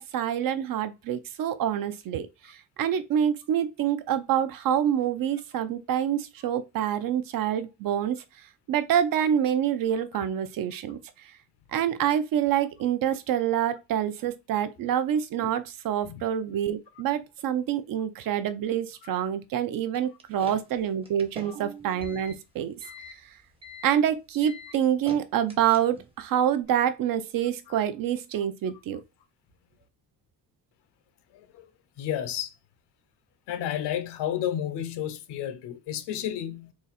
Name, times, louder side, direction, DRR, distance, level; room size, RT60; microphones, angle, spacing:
voice 1, 0.0-2.3 2.8-8.2 8.7-11.0 11.7-22.7 23.8-29.0, right 9 dB, 60° right, 0.6 m, -26 dB
sound 1, 19.9-26.2, left 1 dB, 15° right, 0.7 m, -45 dB
voice 2, 31.3-31.7 32.0-32.5 33.5-36.7, left 10 dB, 90° left, 0.8 m, -32 dB
4.0 x 2.4 x 4.0 m
cardioid pair, 160°, 39 cm